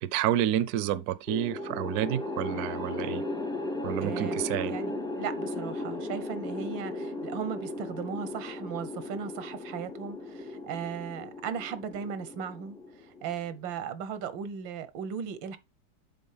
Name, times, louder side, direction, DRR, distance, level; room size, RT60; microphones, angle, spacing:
voice 1, 0.0-3.2 3.8-4.7, right 12 dB, 70° right, 1.0 m, -29 dB
sound 1, 1.3-13.6, left 2 dB, 5° left, 0.3 m, -36 dB
voice 2, 4.0-15.6, right 7 dB, 85° right, 1.6 m, -37 dB
7.7 x 4.1 x 5.5 m
omnidirectional pair, 2.0 m